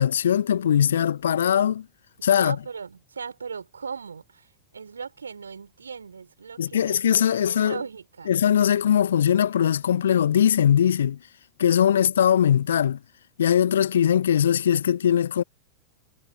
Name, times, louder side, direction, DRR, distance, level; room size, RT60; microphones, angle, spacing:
voice 1, 0.0-1.8 2.2-2.6 6.6-7.8 8.3-11.2 11.6-13.0 13.4-15.4, left 9 dB, 65° left, 1.5 m, -21 dB
voice 2, 2.3-7.0 7.3-8.4, right 5 dB, 75° right, 5.9 m, -38 dB
figure-of-eight pair, 90°, 0 cm